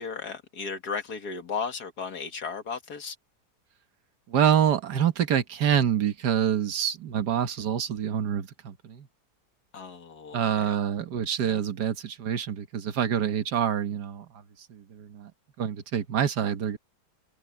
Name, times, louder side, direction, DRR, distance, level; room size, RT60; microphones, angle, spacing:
voice 1, 0.0-3.2 9.7-10.8, left 5 dB, 70° left, 2.3 m, -35 dB
voice 2, 4.3-9.1 10.3-14.3 14.7-15.3 15.6-16.8, right 9 dB, 80° right, 1.8 m, -26 dB
omnidirectional pair, 1.7 m